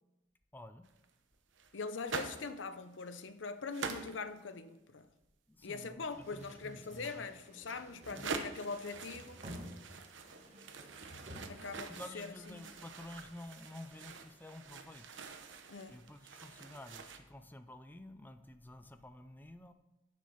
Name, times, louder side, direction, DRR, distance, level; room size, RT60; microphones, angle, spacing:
voice 1, 0.5-0.8 5.6-7.3 11.9-15.2 15.9-19.7, left 1 dB, 10° left, 0.5 m, -51 dB
sound 1, 0.8-1.1 1.5-2.6 2.9-3.2 3.7-4.4 7.6-7.7 8.0-17.2, right 4 dB, 80° right, 0.9 m, -45 dB
voice 2, 1.7-5.1 5.6-9.4 11.5-12.7 15.7-16.0, left 4 dB, 85° left, 0.7 m, -43 dB
sound 2, 6.1-11.7, equal, 35° right, 1.3 m, -52 dB
10.0 x 6.4 x 5.7 m
head